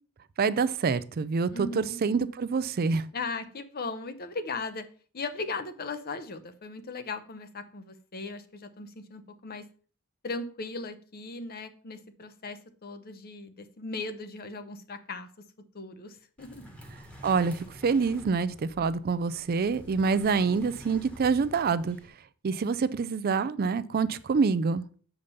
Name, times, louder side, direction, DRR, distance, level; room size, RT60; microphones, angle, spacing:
voice 1, 0.4-3.1 17.2-22.0 22.4-24.8, right 5 dB, 45° right, 15 dB, 0.4 m, -26 dB
voice 2, 1.5-2.0 3.1-4.8 5.1-9.6 10.2-15.3 15.7-16.7, left 3 dB, 45° left, 10 dB, 0.8 m, -38 dB
sound 1, 16.4-22.1, equal, 5° left, 1.4 m, -49 dB
7.0 x 5.1 x 5.3 m, 0.43 s
head